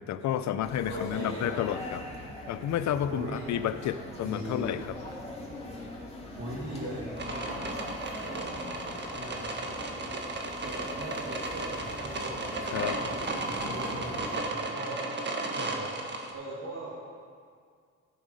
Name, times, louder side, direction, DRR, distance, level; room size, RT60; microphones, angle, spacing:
voice 1, 0.0-2.0 2.5-5.0 12.6-13.0, left 10 dB, 70° left, 12 dB, 0.6 m, -31 dB
sound 1, 0.6-14.4, left 2 dB, 20° left, 2.6 m, -42 dB
voice 2, 0.9-1.6 3.1-3.4 4.2-4.8 6.4-7.9 8.3-9.9 10.6-15.0 15.5-15.9 16.3-17.1, right 1 dB, 50° right, -6 dB, 2.6 m, -40 dB
sound 2, 7.2-16.3, right 2 dB, 35° right, 1.5 m, -35 dB
14.5 x 6.5 x 5.3 m, 2.1 s
cardioid pair, 90°, 30 cm